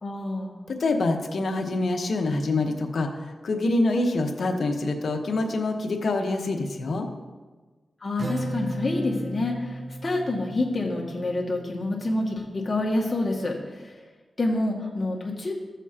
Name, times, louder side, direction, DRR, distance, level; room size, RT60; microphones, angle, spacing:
voice 1, 0.0-0.5 8.0-13.9 14.4-15.5, left 2 dB, 40° left, -2 dB, 1.9 m, -27 dB
voice 2, 0.7-7.1, left 2 dB, 65° left, 4 dB, 1.0 m, -26 dB
Acoustic guitar, 8.2-11.8, right 2 dB, 45° right, 1.0 m, -35 dB
14.5 x 7.2 x 2.9 m, 1.3 s
wide cardioid pair, 85°, 0 cm